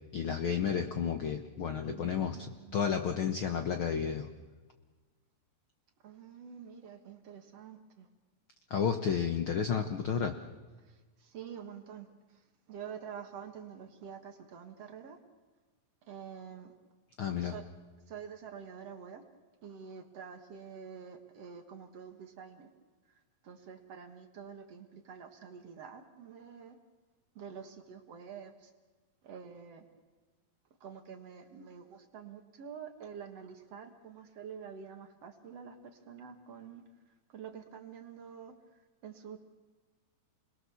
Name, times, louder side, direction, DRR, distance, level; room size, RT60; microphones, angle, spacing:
voice 1, 0.1-4.3 8.7-10.3 17.2-17.5, left 7 dB, 90° left, 7 dB, 1.1 m, -32 dB
voice 2, 1.8-2.9 6.0-8.1 10.9-12.1 12.7-15.2 16.1-16.7 17.3-17.6 18.1-19.2 19.6-22.7 23.4-26.8 27.4-28.7 29.2-29.8 30.8-36.8 37.3-38.5 39.0-39.4, right 7 dB, 55° right, 6 dB, 2.2 m, -47 dB
29.0 x 21.5 x 7.1 m, 1.3 s
omnidirectional pair, 4.1 m